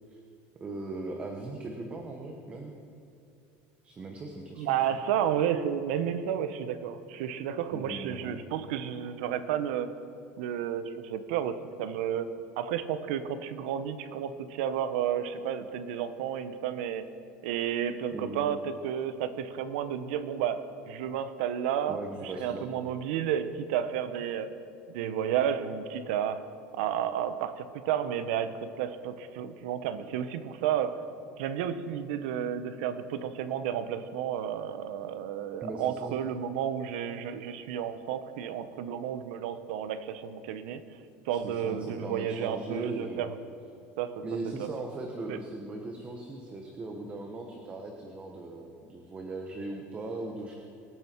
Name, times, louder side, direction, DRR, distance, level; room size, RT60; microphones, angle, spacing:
voice 1, 0.6-2.7 3.8-5.0 7.7-8.4 18.1-18.5 21.9-22.7 35.6-36.2 41.4-43.3 44.2-50.6, right 2 dB, 25° right, 2 dB, 1.3 m, -39 dB
voice 2, 4.6-9.9 10.4-12.3 12.6-17.1 17.4-24.5 24.9-26.4 26.7-31.0 31.4-40.8 41.2-43.4 44.0-44.2 44.6-44.7 45.3-45.4, right 9 dB, 85° right, 11 dB, 1.0 m, -32 dB
24.0 x 9.2 x 4.6 m, 2.5 s
cardioid pair, 145°, 6 cm